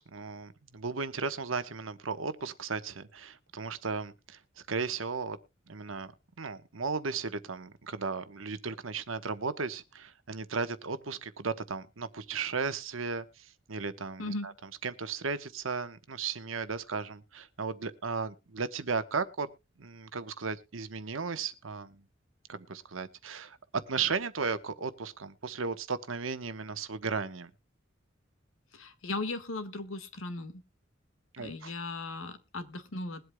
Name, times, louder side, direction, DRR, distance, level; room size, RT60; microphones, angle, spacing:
voice 1, 0.0-4.4 4.7-5.4 5.7-6.1 6.4-14.5 14.8-19.5 19.8-22.0 22.5-23.6 23.9-27.5 31.3-31.7, right 5 dB, 90° right, 1.0 m, -35 dB
voice 2, 28.7-30.6 31.4-33.3, left 2 dB, 90° left, 1.6 m, -37 dB
21.5 x 8.0 x 2.2 m
head